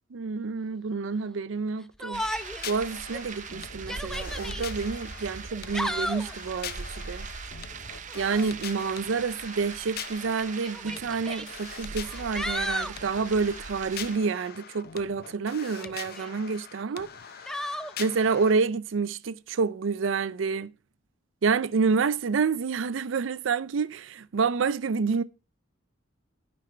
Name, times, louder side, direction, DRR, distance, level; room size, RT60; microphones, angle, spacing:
voice 1, 0.1-2.2 2.6-7.3 8.1-17.1 18.0-20.7 21.4-25.2, right 5 dB, 80° right, 0.5 m, -28 dB
Yell, 2.0-2.7 3.1-3.2 3.7-4.6 5.5-6.3 8.1-8.5 9.7-9.8 10.6-11.5 12.0-13.0 15.6-16.3 17.5-17.9, equal, 5° left, 0.4 m, -34 dB
sound 1, 2.1-14.2, right 5 dB, 40° right, 0.7 m, -41 dB
sound 2, 2.4-18.5, left 9 dB, 55° left, 0.5 m, -43 dB
12.5 x 5.4 x 4.4 m
head